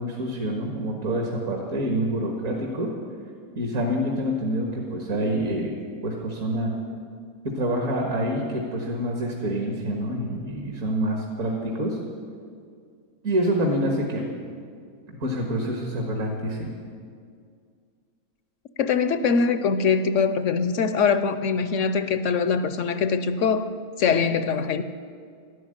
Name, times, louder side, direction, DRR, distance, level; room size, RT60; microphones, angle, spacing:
voice 1, 0.0-2.9 3.5-5.7 6.0-6.7 7.4-12.0 13.2-14.3 15.2-16.7, equal, 60° right, 0 dB, 2.1 m, -27 dB
voice 2, 18.8-23.7 24.0-24.8, left 5 dB, 65° left, 11 dB, 0.9 m, -23 dB
12.5 x 12.5 x 8.8 m, 2.2 s
omnidirectional pair, 1.6 m